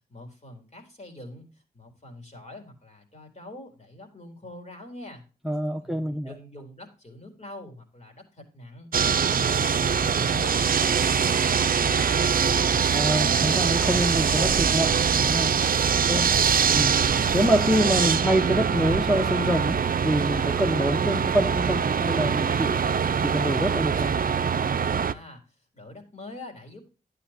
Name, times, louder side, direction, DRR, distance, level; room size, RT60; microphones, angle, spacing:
voice 1, 0.1-5.2 5.8-8.9 9.3-12.7 16.0-16.7 25.0-26.9, left 1 dB, 45° left, 4 dB, 4.0 m, -44 dB
voice 2, 5.4-6.3 12.9-15.6 16.1-16.3 16.7-16.9 17.3-22.8 23.2-24.1, equal, ahead, 4 dB, 1.2 m, -26 dB
sound 1, 8.9-25.1, right 6 dB, 60° right, 0.6 m, -23 dB
12.0 x 9.3 x 2.9 m, 0.34 s
cardioid pair, 50°, 17 cm